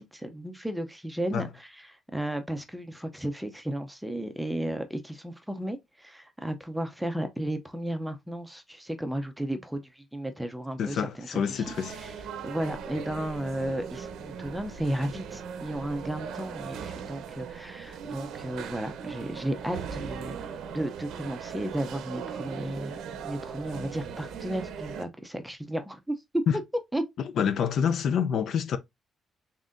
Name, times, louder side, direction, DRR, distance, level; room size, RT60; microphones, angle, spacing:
voice 1, 0.0-12.1 12.4-20.5 20.7-23.0 23.2-26.2 26.9-27.0, right 1 dB, 5° right, 0.5 m, -34 dB
voice 2, 10.8-12.0 26.5-26.6 27.4-28.8, left 7 dB, 55° left, 0.4 m, -27 dB
sound 1, 11.4-25.0, right 7 dB, 80° right, 0.6 m, -39 dB
4.0 x 3.6 x 2.5 m
cardioid pair, 175°, 0 cm